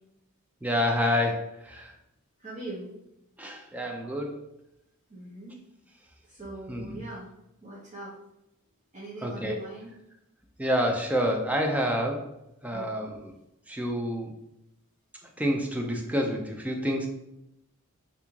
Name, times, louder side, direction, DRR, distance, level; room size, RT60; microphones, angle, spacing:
voice 1, 0.6-1.9 3.4-4.4 6.7-7.0 9.2-9.6 10.6-12.2 12.6-13.3 13.7-14.3 15.4-17.1, equal, 5° right, 2 dB, 0.4 m, -28 dB
voice 2, 2.4-2.9 5.1-5.5 6.2-7.3 7.6-8.1 8.9-9.9 12.7-12.9, right 2 dB, 30° right, -8 dB, 0.7 m, -41 dB
3.0 x 2.6 x 3.5 m, 0.86 s
head